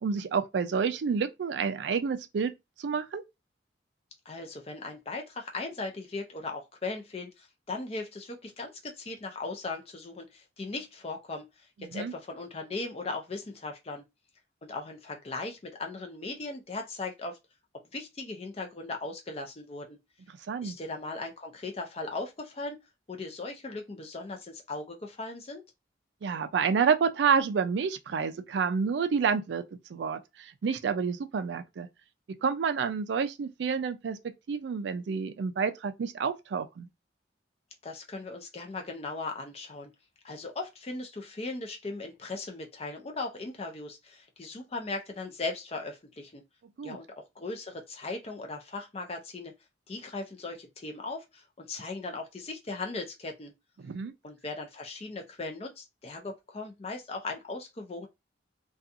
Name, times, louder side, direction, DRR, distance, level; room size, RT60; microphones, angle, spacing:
voice 1, 0.0-2.5 2.8-3.2 11.9-12.1 20.5-20.8 26.2-29.6 29.9-31.9 32.4-36.9 46.8-47.0 53.8-54.1, right 6 dB, 65° right, 0.3 m, -29 dB
voice 2, 4.3-14.0 14.6-17.4 17.9-20.0 20.6-22.8 23.1-25.6 37.8-39.9 40.2-46.4 46.8-49.5 49.9-53.5 54.2-58.1, left 3 dB, 30° left, 0.5 m, -38 dB
2.4 x 2.3 x 2.6 m
head